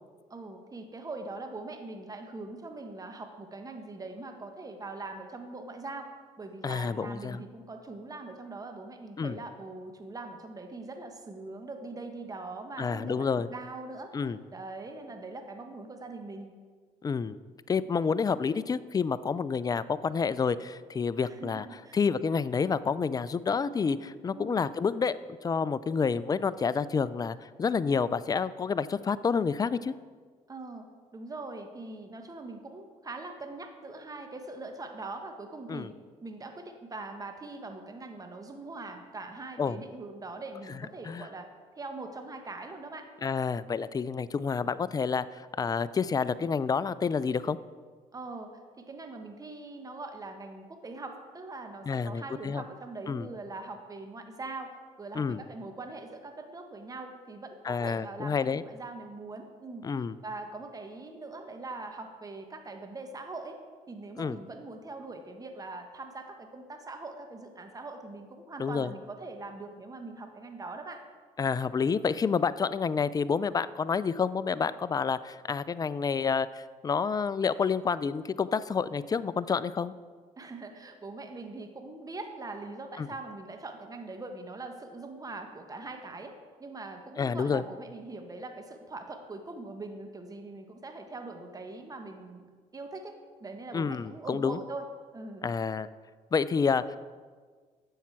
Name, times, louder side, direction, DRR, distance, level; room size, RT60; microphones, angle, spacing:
voice 1, 0.3-6.1 6.4-16.5 21.2-22.0 24.3-24.6 30.5-30.8 31.1-35.9 36.2-41.5 41.8-43.0 48.1-48.5 48.9-54.7 55.0-59.9 60.2-63.6 63.9-71.0 80.4-86.3 86.6-92.5 92.7-93.1 93.4-94.9 95.1-95.5, right 3 dB, 25° right, 5 dB, 1.3 m, -42 dB
voice 2, 6.6-7.4 9.2-9.4 12.8-13.5 14.1-14.4 17.0-17.4 17.7-21.7 21.9-25.2 25.4-29.9 35.7-35.9 39.6-39.8 41.1-41.3 43.2-47.6 51.9-52.6 53.1-53.3 55.1-55.4 57.6-58.6 59.8-60.1 64.2-64.4 68.6-68.9 71.4-79.9 83.0-83.1 87.2-87.6 93.7-94.6 95.4-95.9 96.3-97.0, left 5 dB, 25° left, 16 dB, 0.4 m, -29 dB
10.5 x 7.3 x 4.6 m, 1.5 s
supercardioid pair, 70°, 14 cm